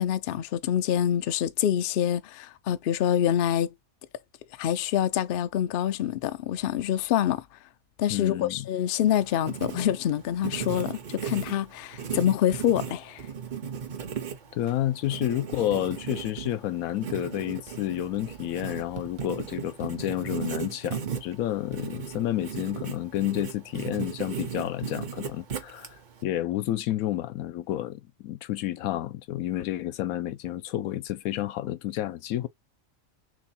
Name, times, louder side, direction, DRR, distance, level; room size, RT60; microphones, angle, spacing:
voice 1, 0.0-3.7 4.6-7.4 8.0-13.2, left 10 dB, 65° left, 0.5 m, -26 dB
voice 2, 8.1-8.7 14.5-25.9 26.2-32.5, left 13 dB, 90° left, 1.0 m, -30 dB
Writing, 9.1-26.2, right 7 dB, 45° right, 0.7 m, -37 dB
3.5 x 3.0 x 4.1 m
omnidirectional pair, 1.4 m